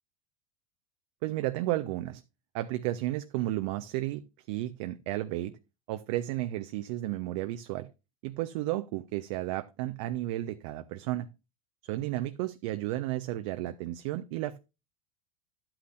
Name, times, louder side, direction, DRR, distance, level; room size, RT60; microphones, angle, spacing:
voice 1, 1.2-2.2 2.5-4.2 4.5-5.5 5.9-7.9 8.2-11.3 11.9-14.6, right 15 dB, 60° right, 0.9 m, -33 dB
12.5 x 8.9 x 2.6 m
hypercardioid pair, 80°, 19 cm